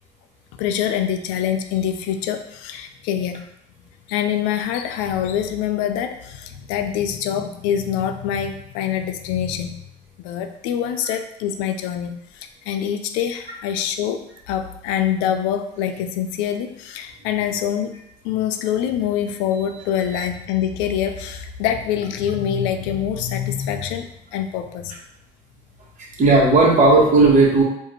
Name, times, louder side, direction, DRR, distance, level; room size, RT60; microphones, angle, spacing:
voice 1, 0.6-3.4 4.1-9.8 10.2-17.9 18.2-24.9, left 9 dB, 90° left, 7 dB, 0.5 m, -25 dB
voice 2, 26.0-27.6, right 3 dB, 40° right, -3 dB, 1.3 m, -14 dB
4.8 x 2.5 x 3.1 m, 0.76 s
cardioid pair, 105°, 19 cm